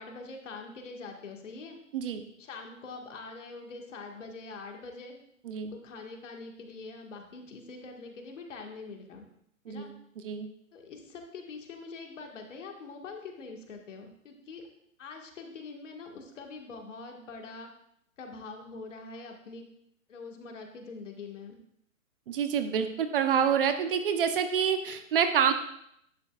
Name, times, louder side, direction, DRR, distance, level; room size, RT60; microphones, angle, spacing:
voice 1, 0.0-1.8 2.4-5.2 5.7-9.3 9.7-9.9 10.7-14.6 15.0-17.7 18.2-19.7 20.1-21.6, left 4 dB, 60° left, 2 dB, 1.9 m, -44 dB
voice 2, 1.9-2.2 5.4-5.7 9.7-10.5 22.3-25.5, right 8 dB, 40° right, 8 dB, 0.8 m, -27 dB
11.0 x 8.5 x 2.5 m, 0.73 s
hypercardioid pair, 135°, 41 cm